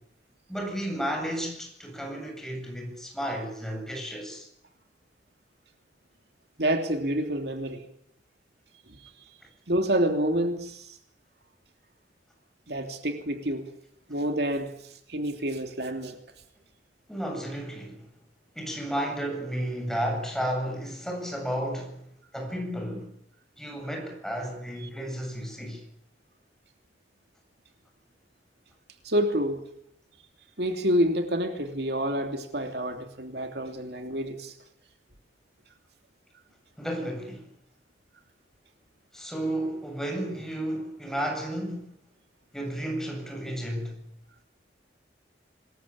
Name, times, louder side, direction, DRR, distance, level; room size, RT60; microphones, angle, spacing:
voice 1, 0.5-4.5 17.1-18.0 18.5-22.0 22.3-23.1 23.6-25.8 36.8-37.5 39.1-41.9 42.5-44.1, equal, 5° left, 7.9 m, -32 dB
voice 2, 6.6-7.8 9.7-11.0 12.7-13.7 14.1-16.2 24.8-24.9 29.0-29.6 30.6-34.6, right 1 dB, 60° right, 3.0 m, -28 dB
26.5 x 21.5 x 8.8 m
head